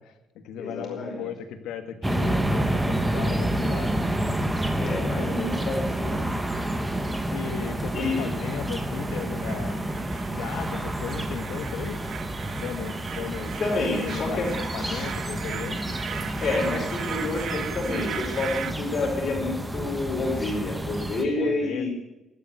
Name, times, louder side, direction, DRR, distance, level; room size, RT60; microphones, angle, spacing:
voice 1, 0.0-4.0 5.0-5.5 6.7-6.8 7.3-9.8 10.3-12.0 12.6-14.4 14.7-15.8 21.4-21.9, left 8 dB, 85° left, 9 dB, 1.6 m, -36 dB
voice 2, 0.6-1.3 4.8-6.2 7.9-8.3 13.6-14.5 14.8-15.1 16.4-21.9, left 3 dB, 35° left, -1 dB, 5.1 m, -29 dB
sound 1, 2.0-21.2, right 1 dB, 10° right, 1.1 m, -29 dB
sound 2, 5.1-18.7, right 8 dB, 50° right, 1.0 m, -39 dB
12.5 x 9.0 x 8.1 m, 1.0 s
cardioid pair, 165°, 0 cm